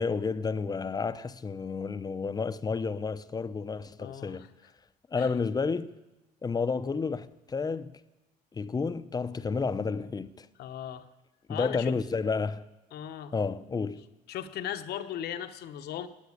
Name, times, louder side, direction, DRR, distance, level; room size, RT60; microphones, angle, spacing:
voice 1, 0.0-4.5 5.1-5.9 6.4-8.0 8.5-10.5 11.5-12.7 13.3-14.0, left 4 dB, 25° left, 0.7 m, -31 dB
voice 2, 4.0-4.4 5.2-5.3 10.6-11.0 11.5-11.9 12.9-13.3 14.3-16.1, left 10 dB, 70° left, 1.1 m, -37 dB
17.0 x 9.4 x 8.5 m
cardioid pair, 110°, 17 cm